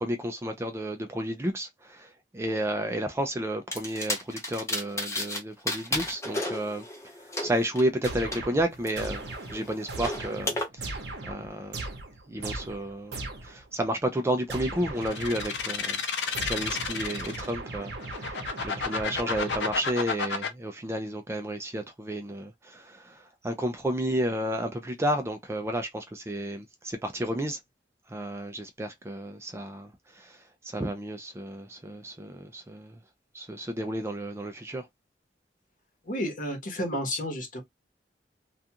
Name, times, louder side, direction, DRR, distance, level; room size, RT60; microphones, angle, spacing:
voice 1, 0.0-6.9 7.2-9.2 9.5-11.0 11.3-11.9 12.3-27.6 28.1-33.0 33.3-34.9, right 1 dB, 15° right, 0.3 m, -32 dB
sound 1, 3.7-5.4 5.7-8.4 8.8-10.7, left 1 dB, 15° left, 0.7 m, -33 dB
sound 2, 8.0-13.7 14.5-15.8 16.3-20.0, right 2 dB, 70° right, 0.8 m, -38 dB
sound 3, 15.0-17.5 18.0-20.5, left 5 dB, 75° left, 0.7 m, -31 dB
voice 2, 36.1-37.6, equal, 50° left, 1.0 m, -31 dB
2.4 x 2.3 x 2.7 m
head